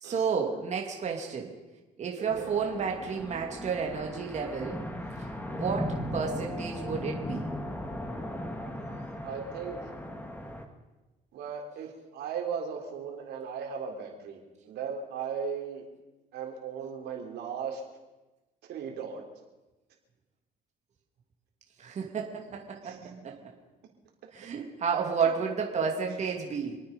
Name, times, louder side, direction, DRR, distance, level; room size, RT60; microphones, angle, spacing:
voice 1, 0.0-1.5 2.0-4.8 5.5-7.5 21.8-23.4 24.3-26.8, right 6 dB, 45° right, 1 dB, 2.6 m, -31 dB
voice 2, 2.2-2.5 9.2-9.9 11.3-14.4 14.6-15.9 16.3-17.8 18.7-19.2 22.8-23.0, right 6 dB, 75° right, 1 dB, 3.8 m, -37 dB
sound 1, 2.3-10.6, left 1 dB, 10° left, 2.1 m, -37 dB
27.0 x 9.4 x 5.4 m, 1.1 s
cardioid pair, 110°, 17 cm